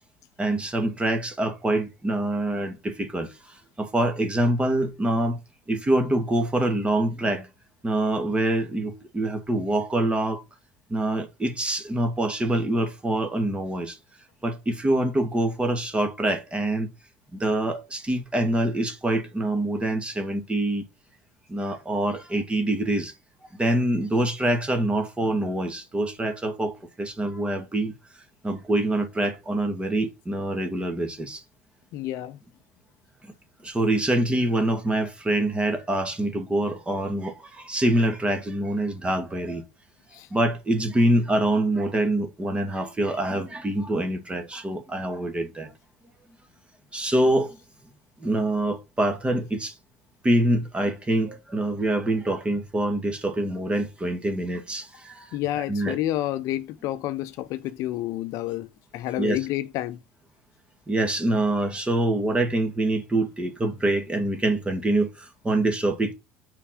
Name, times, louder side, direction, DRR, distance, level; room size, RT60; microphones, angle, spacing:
voice 1, 0.4-5.4 5.7-7.5 7.8-10.4 10.9-14.0 14.4-16.9 17.3-20.8 21.5-23.1 23.6-27.9 28.4-31.4 33.6-39.6 40.3-45.7 46.9-47.6 48.2-49.7 50.2-55.4 55.7-56.0 59.2-59.4 60.9-66.1, right 1 dB, 15° right, 2.0 m, -25 dB
voice 2, 31.9-32.4 40.1-40.3 55.3-58.7 58.9-60.0, left 14 dB, 60° left, 0.7 m, -29 dB
5.5 x 4.6 x 6.3 m
hypercardioid pair, 70°, 6 cm